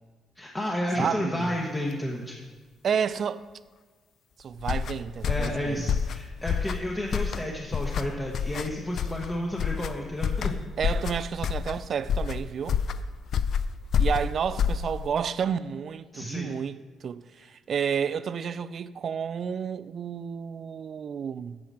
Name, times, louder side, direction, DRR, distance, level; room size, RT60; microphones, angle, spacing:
voice 1, 0.4-2.4 5.2-10.6 16.1-16.6, left 1 dB, 15° left, 1.1 m, -31 dB
voice 2, 1.0-1.5 2.8-3.5 4.4-6.0 10.8-12.8 14.0-21.6, right 7 dB, 55° right, 0.4 m, -31 dB
sound 1, 4.6-15.2, left 7 dB, 65° left, 0.4 m, -29 dB
9.6 x 4.9 x 7.3 m
cardioid pair, 90°, 0 cm